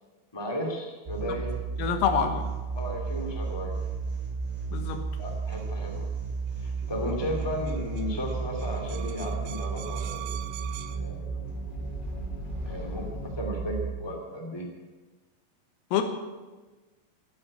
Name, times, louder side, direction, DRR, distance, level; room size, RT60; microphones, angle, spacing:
voice 1, 0.3-1.5 2.7-3.8 5.2-6.1 6.6-10.3 10.9-11.2 12.6-14.7, equal, 25° left, 0 dB, 0.5 m, -34 dB
sound 1, 1.1-13.9, right 5 dB, 10° right, 3.0 m, -33 dB
voice 2, 1.8-2.5 4.7-5.0 15.9-16.0, left 7 dB, 90° left, 7 dB, 4.0 m, -26 dB
sound 2, 5.5-5.7 6.8-6.9 7.1-7.2 7.4-11.0, right 14 dB, 80° right, 2.7 m, -43 dB
sound 3, 6.8-13.4, left 5 dB, 65° left, 4.3 m, -45 dB
14.0 x 8.8 x 9.8 m, 1.2 s
omnidirectional pair, 5.8 m